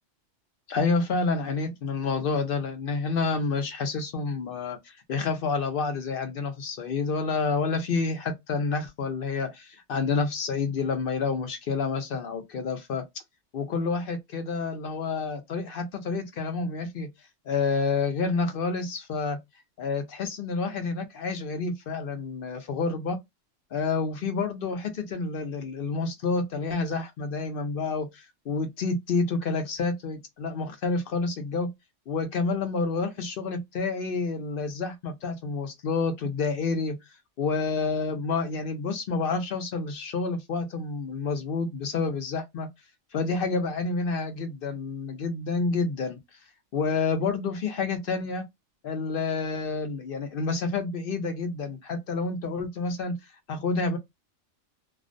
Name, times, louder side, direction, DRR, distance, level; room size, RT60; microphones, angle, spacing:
voice 1, 0.7-13.0 13.5-17.1 17.5-19.4 19.8-23.2 23.7-31.7 32.1-37.0 37.4-42.7 43.1-46.2 46.7-48.4 48.8-53.2 53.5-54.0, left 4 dB, 55° left, 0.7 m, -29 dB
2.4 x 2.1 x 2.5 m
omnidirectional pair, 1.3 m